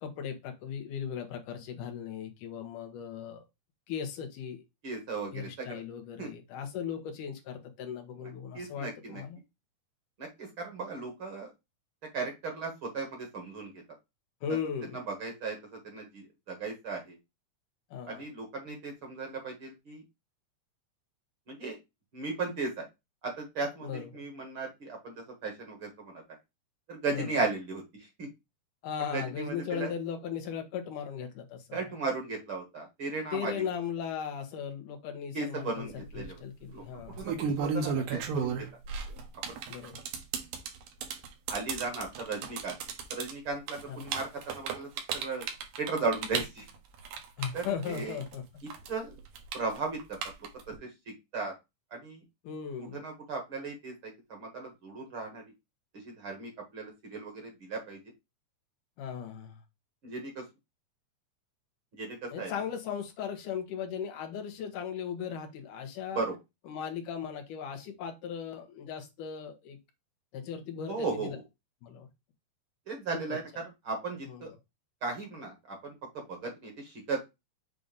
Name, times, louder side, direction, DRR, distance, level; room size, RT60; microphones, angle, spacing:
voice 1, 0.0-3.4 3.9-4.6 5.3-9.4 14.4-15.0 17.9-18.2 23.8-24.1 27.1-27.3 28.8-31.9 33.3-35.9 36.1-37.4 39.7-40.0 43.9-44.1 47.4-48.4 52.4-53.0 59.0-59.6 62.3-66.2 66.7-69.8 70.3-71.4 71.8-72.1 73.3-73.4 74.2-74.6, left 7 dB, 85° left, 7 dB, 2.6 m, -37 dB
voice 2, 4.8-5.8 6.2-6.3 8.5-9.2 10.2-11.5 12.1-13.7 14.9-17.2 18.1-20.0 21.5-21.8 22.1-22.9 23.2-26.2 26.9-28.3 29.1-29.9 31.7-33.6 35.3-36.4 36.7-36.8 37.2-37.3 37.6-38.7 39.5-39.6 41.5-42.8 43.1-45.5 45.8-46.7 47.5-48.2 48.9-49.2 49.5-50.2 50.7-50.9 51.3-51.5 51.9-52.2 52.8-55.4 55.9-58.0 60.0-60.5 61.9-62.5 66.1-66.4 70.9-71.4 72.9-74.5 75.0-77.2, right 3 dB, 50° right, 2 dB, 1.9 m, -36 dB
sound 1, 35.9-36.2 37.0-48.4 48.7-50.8, right 6 dB, 85° right, 2.7 m, -34 dB
7.5 x 2.6 x 5.1 m, 0.22 s
omnidirectional pair, 3.6 m